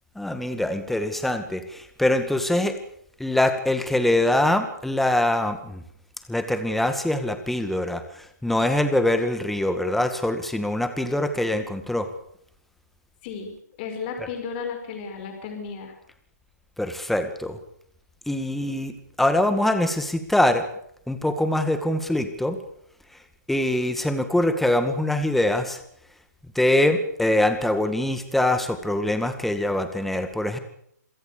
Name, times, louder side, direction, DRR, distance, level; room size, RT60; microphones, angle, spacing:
voice 1, 0.2-2.8 3.2-5.8 6.3-12.1 16.8-17.6 18.3-18.9 19.2-20.7 21.1-22.6 23.5-25.8 26.6-30.6, left 1 dB, ahead, 8 dB, 2.0 m, -23 dB
voice 2, 13.2-15.9, left 5 dB, 35° left, 4 dB, 5.9 m, -34 dB
27.0 x 17.0 x 6.9 m, 0.68 s
hypercardioid pair, 145°, 9 cm